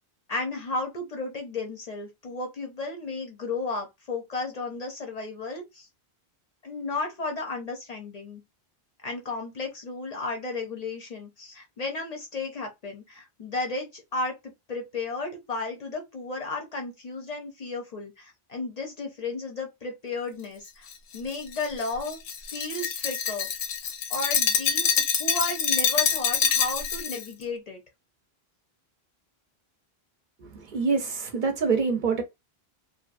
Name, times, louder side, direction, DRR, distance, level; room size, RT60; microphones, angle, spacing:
voice 1, 0.3-5.9 6.6-8.4 9.0-14.4 14.7-20.9 21.1-23.5 24.1-27.8, left 3 dB, 50° left, 0.5 m, -33 dB
Glass, 20.9-27.2, left 7 dB, 90° left, 0.8 m, -26 dB
voice 2, 30.4-32.2, right 5 dB, 55° right, 0.7 m, -26 dB
2.7 x 2.3 x 2.4 m
omnidirectional pair, 1.1 m